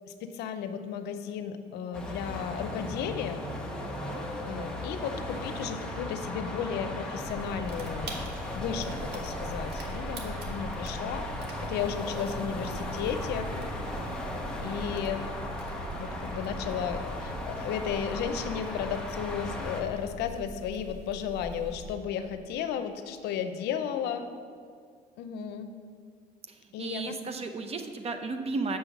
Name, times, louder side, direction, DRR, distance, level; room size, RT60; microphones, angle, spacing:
voice 1, 0.2-3.5 4.4-8.2 8.5-11.3 11.6-13.5 14.3-15.3 15.9-24.3 25.2-25.7 26.7-27.2, left 8 dB, 85° left, 8 dB, 0.6 m, -34 dB
sound 1, 1.9-19.8, left 1 dB, 5° left, 1.1 m, -37 dB
voice 2, 3.8-4.2 13.9-14.2 26.5-28.8, right 3 dB, 35° right, 7 dB, 0.7 m, -35 dB
sound 2, 7.3-22.0, right 1 dB, 80° right, 1.3 m, -42 dB
6.4 x 5.5 x 7.1 m, 2.1 s
cardioid pair, 110°, 17 cm